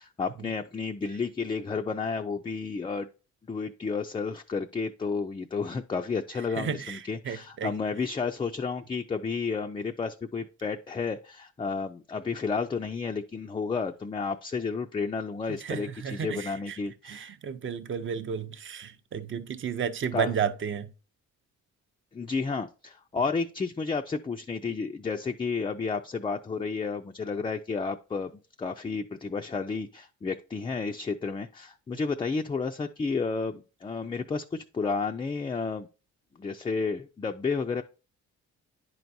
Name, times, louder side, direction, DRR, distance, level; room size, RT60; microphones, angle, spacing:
voice 1, 0.0-3.1 3.5-17.3 20.1-20.3 22.1-28.3 28.6-35.9 36.4-37.8, left 4 dB, 15° left, 0.4 m, -31 dB
voice 2, 6.6-7.0 7.3-7.7 15.7-16.5 17.1-20.9, right 7 dB, 40° right, 0.7 m, -32 dB
10.0 x 4.6 x 2.6 m
cardioid pair, 90°, 30 cm